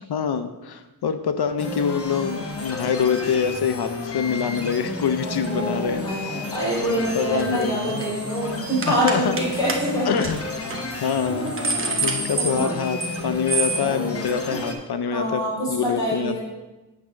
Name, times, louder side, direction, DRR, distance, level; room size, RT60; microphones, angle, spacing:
voice 1, 0.1-6.2 7.1-8.0 8.9-9.4 10.1-10.4 11.0-11.5 12.0-15.4 15.7-16.4, left 7 dB, 75° left, 9 dB, 0.6 m, -25 dB
sound 1, 1.6-14.8, left 2 dB, 35° left, 0.9 m, -32 dB
voice 2, 5.2-10.1 10.8-12.1 12.4-12.7 13.7-14.6 15.1-16.4, right 1 dB, 10° left, -7 dB, 2.7 m, -27 dB
sound 2, 7.4-7.6 7.9-8.2 8.8-9.4 9.7-9.8 10.2-10.3 10.7-10.8 11.3-13.2 13.5-13.8, right 3 dB, 35° right, 0.9 m, -26 dB
8.1 x 3.6 x 6.3 m, 1.1 s
wide cardioid pair, 110°, 39 cm